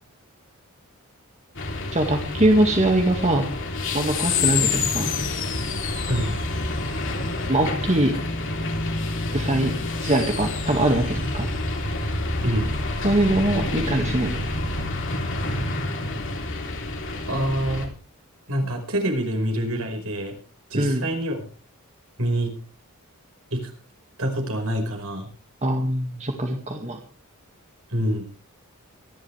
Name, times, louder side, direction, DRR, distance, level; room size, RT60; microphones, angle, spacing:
sound 1, 1.5-17.9, left 3 dB, 60° left, 3.5 m, -28 dB
voice 1, 1.9-3.5 3.9-5.1 7.5-8.2 9.3-9.7 10.0-11.5 13.0-14.5 20.7-21.1 25.6-27.0, right 1 dB, 30° right, 3 dB, 2.0 m, -22 dB
voice 2, 12.4-12.8 17.3-17.9 18.5-20.4 20.7-21.5 22.2-22.5 23.5-23.7 24.2-25.3 27.9-28.3, equal, 70° right, 3 dB, 5.3 m, -26 dB
24.0 x 11.5 x 3.4 m, 0.35 s
head